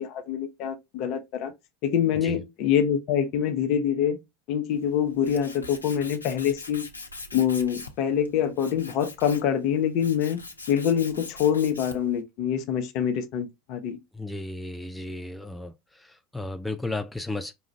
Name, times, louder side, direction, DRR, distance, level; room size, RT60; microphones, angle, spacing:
voice 1, 0.0-1.5 1.8-4.2 4.5-6.8 7.3-14.0, left 8 dB, 50° left, 0.8 m, -25 dB
Tools, 4.7-12.2, left 3 dB, 85° left, 0.6 m, -43 dB
voice 2, 14.1-17.5, left 2 dB, 5° left, 0.4 m, -34 dB
5.0 x 2.4 x 3.2 m
figure-of-eight pair, 75°, 0 cm